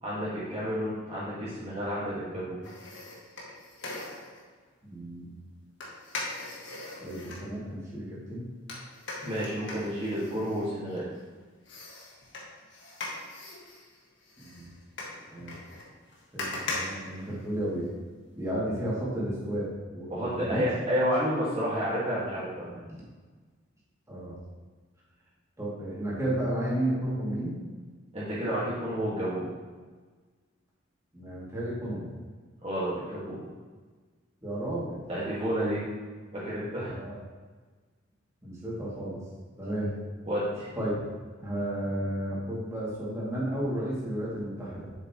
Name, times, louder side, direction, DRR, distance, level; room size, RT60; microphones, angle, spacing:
voice 1, 0.0-2.7 9.2-11.0 20.1-22.8 28.1-29.5 32.6-33.4 35.1-35.8 36.3-36.9 40.3-40.7, equal, 30° right, -10 dB, 1.7 m, -30 dB
sound 1, 2.6-4.4 5.8-7.5 8.7-11.2 11.6-17.9 18.2-18.3, left 2 dB, 65° left, 1.7 m, -40 dB
voice 2, 4.8-5.4 7.0-8.5 14.4-14.7 15.3-15.6 16.3-17.9 18.3-20.6 24.1-24.4 25.6-27.6 31.1-32.1 34.4-35.0 36.9-37.2 38.4-39.2 39.6-39.9 40.7-41.0 41.4-44.9, right 1 dB, 15° right, -7 dB, 2.4 m, -33 dB
7.2 x 7.2 x 3.0 m, 1.4 s
head